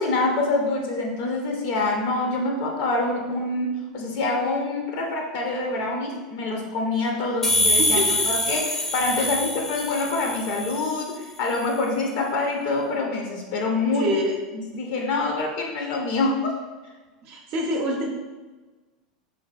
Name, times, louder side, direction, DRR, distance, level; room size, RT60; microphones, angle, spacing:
voice 1, 0.0-14.1 14.5-16.5, left 2 dB, 60° left, 1 dB, 0.5 m, -26 dB
sound 1, 7.4-11.0, left 1 dB, 5° left, 0.4 m, -24 dB
voice 2, 7.8-8.3 13.9-14.4 17.2-18.1, equal, 55° right, 0 dB, 0.5 m, -26 dB
3.2 x 2.5 x 2.3 m, 1.3 s
hypercardioid pair, 95°, 4 cm